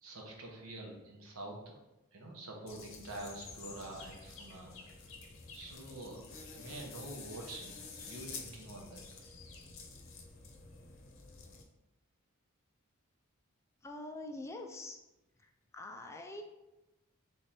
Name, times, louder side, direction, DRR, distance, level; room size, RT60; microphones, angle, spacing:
voice 1, 0.0-1.8 2.1-4.9 5.5-6.2 6.5-9.1, right 2 dB, 80° right, 0 dB, 1.0 m, -46 dB
sound 1, 2.7-11.6, left 4 dB, 65° left, 0.7 m, -50 dB
voice 2, 13.8-15.0 15.4-16.4, left 2 dB, 15° left, 4 dB, 0.4 m, -45 dB
3.6 x 3.3 x 4.3 m, 0.98 s
head